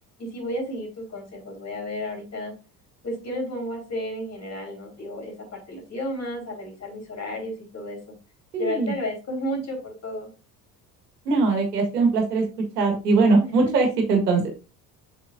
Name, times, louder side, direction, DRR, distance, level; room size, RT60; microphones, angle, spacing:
voice 1, 0.2-2.5 3.0-8.2 8.6-10.3 13.4-13.5, equal, 35° left, -1 dB, 4.2 m, -32 dB
voice 2, 8.5-8.9 11.3-12.4 12.8-14.5, right 3 dB, 75° right, 3 dB, 1.7 m, -21 dB
7.5 x 6.2 x 2.6 m, 0.30 s
figure-of-eight pair, 60°, 47 cm